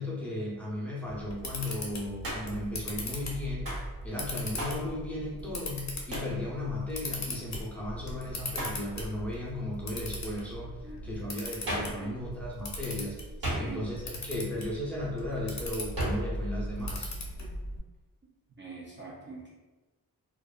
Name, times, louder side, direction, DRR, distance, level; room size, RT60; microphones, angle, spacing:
voice 1, 0.0-3.7 4.0-13.2 13.6-17.1, left 1 dB, 5° left, -7 dB, 0.7 m, -35 dB
Camera, 1.1-17.8, left 1 dB, 50° left, 0.6 m, -39 dB
Hands, 2.2-2.7 3.6-3.9 4.6-4.9 6.1-6.4 8.5-8.8 11.7-12.0 13.4-14.0 16.0-16.3, right 1 dB, 75° right, 1.0 m, -34 dB
voice 2, 13.4-13.9 18.6-19.5, right 3 dB, 35° right, -6 dB, 0.5 m, -43 dB
2.6 x 2.2 x 2.3 m, 1.2 s
wide cardioid pair, 120°, 35 cm